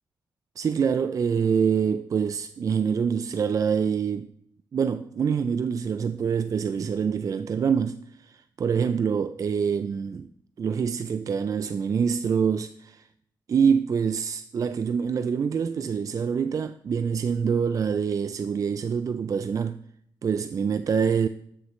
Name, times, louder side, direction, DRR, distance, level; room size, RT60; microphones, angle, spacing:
voice 1, 0.6-4.3 4.7-10.3 10.6-13.1 13.5-19.8 20.2-21.3, right 6 dB, 45° right, 0.3 m, -25 dB
13.0 x 6.6 x 3.1 m
cardioid pair, 80°, 8 cm